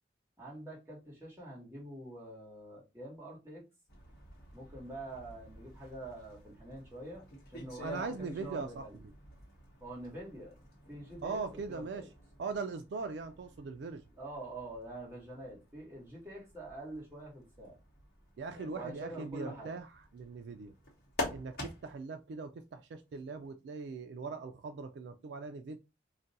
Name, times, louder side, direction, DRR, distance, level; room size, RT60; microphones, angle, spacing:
voice 1, 0.4-3.6 4.5-7.9 8.2-9.0 9.8-11.4 11.7-12.1 14.1-17.8 18.7-19.7, right 1 dB, 15° right, 1.2 m, -46 dB
sound 1, 3.9-22.1 23.1-23.5, left 1 dB, 50° left, 1.0 m, -48 dB
voice 2, 7.8-8.8 11.2-12.0 12.4-14.0 18.4-19.9 20.1-20.7 21.3-25.8, right 4 dB, 65° right, 0.3 m, -40 dB
2.5 x 2.2 x 4.0 m
head